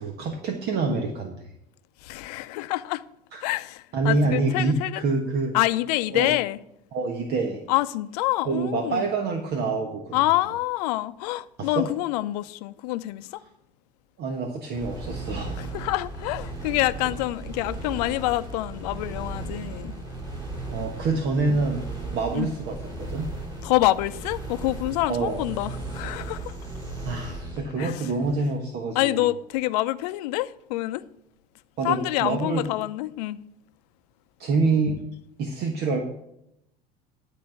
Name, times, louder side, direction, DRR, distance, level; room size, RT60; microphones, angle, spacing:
voice 1, 0.0-1.5 3.3-3.4 3.9-5.5 6.1-6.3 6.9-7.6 8.5-10.2 11.6-11.9 14.2-15.7 20.7-21.9 22.1-23.3 25.1-25.4 27.0-29.3 31.8-32.7 34.4-35.0 35.4-36.0, right 3 dB, 55° right, 1.4 m, -26 dB
voice 2, 2.0-3.0 3.4-5.0 5.5-6.6 7.7-9.1 10.1-13.4 15.6-19.9 22.3-22.5 23.6-26.6 27.8-28.1 28.9-31.0 31.8-33.4, left 17 dB, 75° left, 0.6 m, -26 dB
sound 1, 14.7-27.7, right 2 dB, 20° right, 3.8 m, -36 dB
11.5 x 4.2 x 7.8 m
hypercardioid pair, 85°, 20 cm